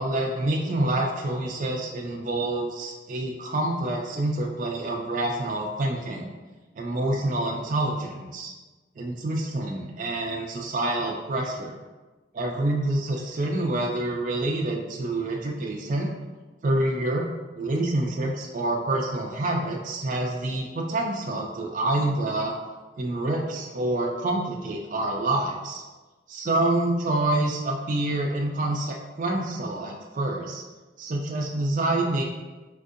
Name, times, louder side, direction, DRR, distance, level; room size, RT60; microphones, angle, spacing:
voice 1, 0.0-6.3 6.8-8.5 9.0-11.7 12.3-16.1 16.6-17.3 17.6-22.6 23.0-25.8 26.3-30.6 31.0-32.2, right 2 dB, 45° right, 0 dB, 0.3 m, -27 dB
4.3 x 2.6 x 2.4 m, 1.2 s
head